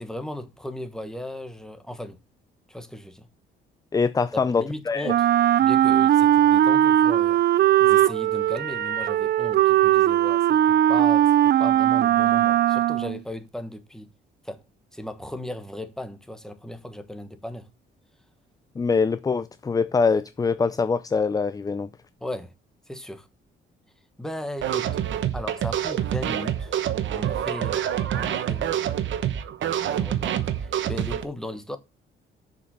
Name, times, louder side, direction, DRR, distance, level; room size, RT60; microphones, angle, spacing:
voice 1, 0.0-2.2 2.7-3.3 4.3-5.3 5.6-7.4 7.8-14.1 14.4-14.6 14.9-17.7 22.2-22.5 22.9-23.3 24.2-25.0 25.3-26.8 27.2-28.9 29.9-31.8, left 1 dB, 5° left, 1.3 m, -36 dB
voice 2, 3.9-5.1 18.8-21.9, left 5 dB, 20° left, 0.4 m, -24 dB
Wind instrument woodwind instrument, 5.0-13.2, right 12 dB, 55° right, 0.5 m, -19 dB
sound 1, 24.6-31.2, right 10 dB, 70° right, 1.0 m, -27 dB
6.6 x 5.3 x 6.7 m
cardioid pair, 90°, 20 cm